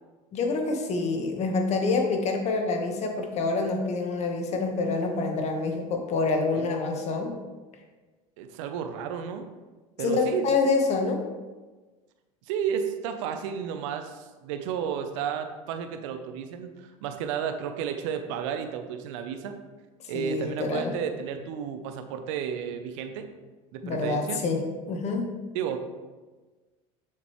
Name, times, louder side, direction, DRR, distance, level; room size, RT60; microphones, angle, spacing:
voice 1, 0.3-7.4 10.0-11.2 20.0-20.9 23.8-24.6 24.9-25.3, left 3 dB, 45° left, 3 dB, 1.4 m, -27 dB
voice 2, 8.4-9.5 10.0-10.4 12.5-19.6 20.1-23.3 23.7-24.4 25.5-25.8, right 7 dB, 75° right, 7 dB, 0.8 m, -32 dB
7.0 x 6.6 x 3.2 m, 1.3 s
supercardioid pair, 100°, 16 cm